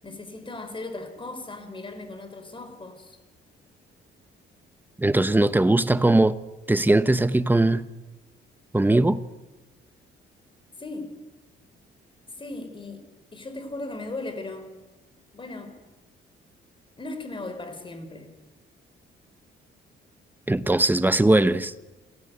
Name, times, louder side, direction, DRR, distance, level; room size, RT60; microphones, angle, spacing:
voice 1, 0.0-3.2 10.7-11.2 12.4-13.1 13.3-14.7 15.3-15.8 17.0-18.4, left 2 dB, 25° left, 4.4 m, -37 dB
voice 2, 5.0-6.4 6.7-7.9 8.7-9.2 20.5-21.7, right 2 dB, 10° right, 1.0 m, -20 dB
27.5 x 16.0 x 8.1 m
cardioid pair, 90°, 20 cm